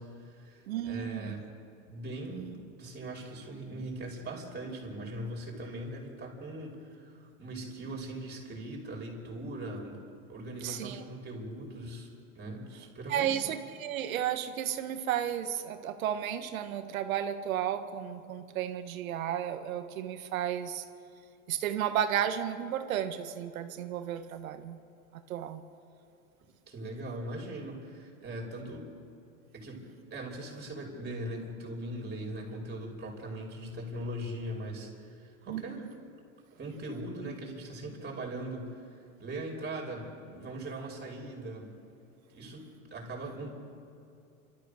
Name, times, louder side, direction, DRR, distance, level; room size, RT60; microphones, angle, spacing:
voice 1, 0.0-1.5 1.8-9.9 10.3-12.1 12.3-13.4 26.7-28.9 29.5-29.8 30.1-35.8 36.5-38.9 39.2-41.7 42.3-43.5, right 1 dB, 25° right, 0 dB, 5.6 m, -40 dB
voice 2, 0.7-1.4 10.6-11.0 13.1-20.8 21.5-24.8 25.3-25.6 35.5-35.9, right 10 dB, 85° right, 8 dB, 1.7 m, -33 dB
29.5 x 13.5 x 6.8 m, 2.6 s
supercardioid pair, 120°, 40 cm